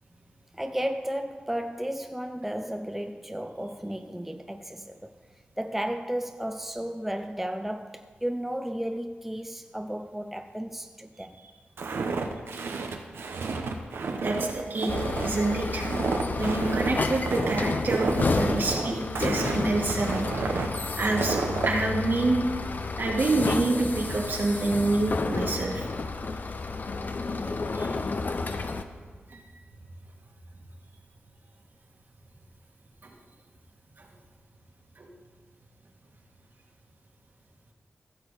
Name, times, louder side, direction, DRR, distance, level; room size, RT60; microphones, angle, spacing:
voice 1, 0.5-5.1 5.6-11.4, equal, 5° right, 0.5 m, -33 dB
Walk footsteps, 11.8-21.7, right 4 dB, 90° right, 0.9 m, -31 dB
voice 2, 14.2-14.9 15.2-15.9 16.4-20.3 21.0-21.4 21.6-22.4 23.0-25.9 27.7-27.9, right 2 dB, 60° right, 1.9 m, -27 dB
sound 1, 14.9-28.8, left 3 dB, 50° left, 0.7 m, -31 dB
15.5 x 6.9 x 4.1 m
cardioid pair, 65°, 4 cm